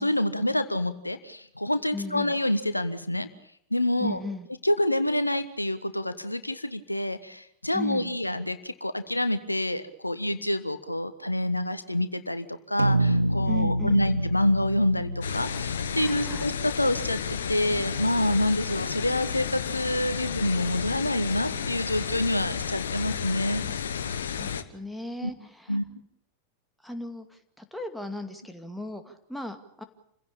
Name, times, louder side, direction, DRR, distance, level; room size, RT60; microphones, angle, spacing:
voice 1, 0.0-3.3 3.7-4.2 4.6-17.2 17.5-23.7 25.2-25.3 25.7-25.8, left 1 dB, 85° left, 11 dB, 1.3 m, -27 dB
voice 2, 1.9-2.3 4.0-4.5 7.7-8.2 13.5-14.2 15.9-16.5 24.4-25.8 26.8-29.8, left 2 dB, ahead, 6 dB, 2.4 m, -37 dB
sound 1, 12.8-17.4, right 1 dB, 80° right, 1.0 m, -28 dB
sound 2, 15.2-24.6, left 7 dB, 65° left, 1.4 m, -32 dB
28.0 x 16.5 x 8.7 m, 0.71 s
figure-of-eight pair, 90°, 0 cm